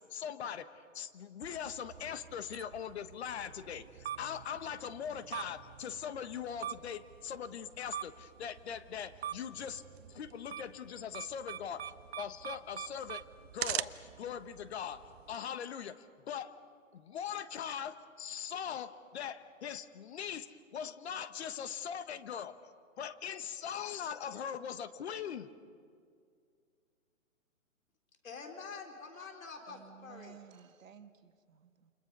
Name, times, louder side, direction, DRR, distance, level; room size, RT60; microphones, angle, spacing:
voice 1, 0.0-9.8 10.1-13.2 13.5-16.6 16.9-22.5 23.0-25.5, left 8 dB, 50° left, 1.5 m, -41 dB
sound 1, 1.4-15.4, right 10 dB, 50° right, 0.8 m, -44 dB
voice 2, 28.2-30.4, left 5 dB, 75° left, 4.1 m, -47 dB
voice 3, 29.7-31.9, right 7 dB, 70° right, 1.8 m, -55 dB
29.0 x 28.5 x 5.5 m
hypercardioid pair, 150°, 41 cm